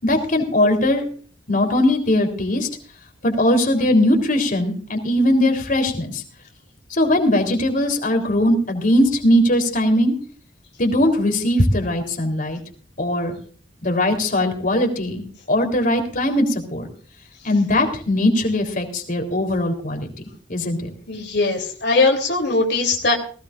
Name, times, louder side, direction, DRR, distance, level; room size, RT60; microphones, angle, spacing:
voice 1, 0.0-1.0 1.5-2.7 3.2-6.2 6.9-10.1 10.8-12.6 13.0-13.3 13.8-15.2 15.5-16.9 17.4-20.1 20.5-20.9, left 1 dB, 45° left, 4 dB, 3.8 m, -19 dB
voice 2, 21.1-23.1, left 3 dB, 65° left, 1 dB, 3.4 m, -20 dB
19.5 x 19.0 x 2.6 m, 0.43 s
head